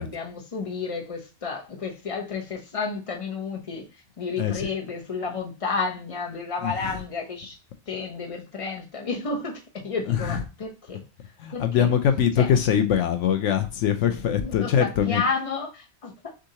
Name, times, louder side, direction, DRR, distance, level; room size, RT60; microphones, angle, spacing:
voice 1, 0.0-3.8 4.2-7.6 7.9-11.0 11.5-11.9 12.4-12.5 14.4-16.3, left 4 dB, 30° left, 1.0 m, -31 dB
voice 2, 4.4-4.7 6.6-7.0 10.0-10.4 11.4-15.2, left 8 dB, 85° left, 0.9 m, -23 dB
6.3 x 2.6 x 2.8 m
omnidirectional pair, 1.2 m